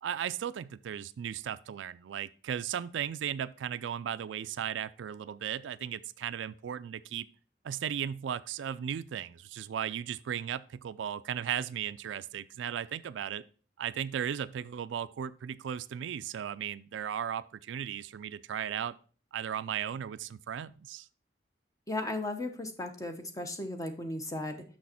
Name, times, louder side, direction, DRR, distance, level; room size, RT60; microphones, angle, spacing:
voice 1, 0.0-7.3 7.6-13.4 13.8-19.0 19.3-21.1, right 9 dB, 85° right, 0.3 m, -36 dB
voice 2, 21.9-24.6, left 2 dB, 20° left, 0.8 m, -36 dB
6.2 x 6.1 x 4.3 m
head